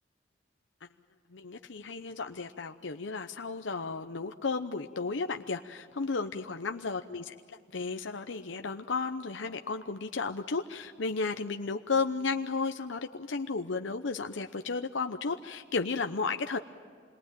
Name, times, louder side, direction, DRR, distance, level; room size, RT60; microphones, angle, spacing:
voice 1, 1.3-16.6, left 4 dB, 75° left, 6 dB, 0.8 m, -33 dB
27.0 x 22.0 x 9.1 m, 2.1 s
head